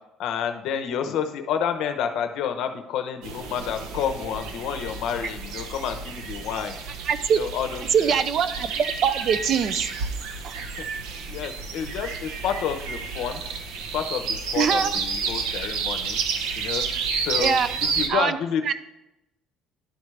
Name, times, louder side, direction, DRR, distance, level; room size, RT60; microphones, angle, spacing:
voice 1, 0.2-6.8 7.4-8.1 10.8-10.9 11.3-13.4 13.9-16.2 16.6-16.9 17.2-17.6 17.9-18.7, left 8 dB, 55° left, 8 dB, 0.7 m, -29 dB
sound 1, 3.2-18.1, right 5 dB, 80° right, 0.8 m, -31 dB
voice 2, 7.1-7.4 7.9-10.1 10.4-10.6 14.6-15.0 17.4-17.7 18.1-18.4 18.7-18.8, right 7 dB, 35° right, 13 dB, 0.3 m, -23 dB
11.5 x 4.8 x 3.2 m, 0.92 s
cardioid pair, 180°, 0 cm